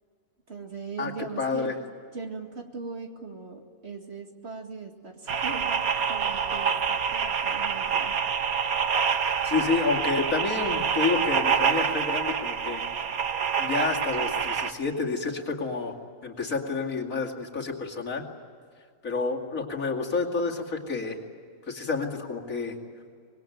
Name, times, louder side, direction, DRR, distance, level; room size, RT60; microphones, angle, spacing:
voice 1, 0.5-1.7 2.1-5.8 6.1-8.1, right 4 dB, 45° right, 3 dB, 2.5 m, -39 dB
voice 2, 1.4-1.7 9.4-12.8 13.6-16.0 16.2-18.2 19.0-21.2 21.7-22.8, left 4 dB, 65° left, 1 dB, 2.9 m, -29 dB
sound 1, 5.3-14.7, right 7 dB, 75° right, 1.6 m, -27 dB
25.5 x 21.0 x 9.3 m, 2.2 s
omnidirectional pair, 1.5 m